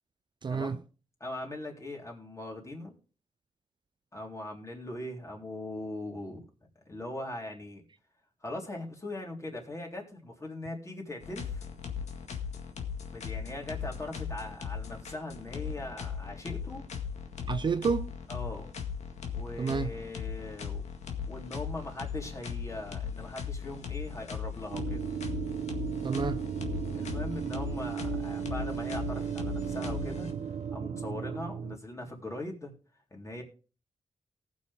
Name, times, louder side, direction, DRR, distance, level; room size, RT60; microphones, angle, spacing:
voice 1, 0.4-0.8 17.5-18.1 19.6-19.9 26.0-26.4, right 5 dB, 40° right, 0.5 m, -29 dB
voice 2, 1.2-2.9 4.1-6.4 6.8-7.8 8.4-11.6 13.1-16.8 18.3-18.7 19.3-20.8 21.3-25.0 26.9-30.3 30.7-32.7 33.1-33.4, left 1 dB, 25° left, 3.4 m, -40 dB
sound 1, 11.2-30.7, left 7 dB, 80° left, 1.9 m, -38 dB
sound 2, 24.7-31.8, right 8 dB, 90° right, 1.0 m, -35 dB
18.5 x 6.4 x 3.6 m
cardioid pair, 95°, 11 cm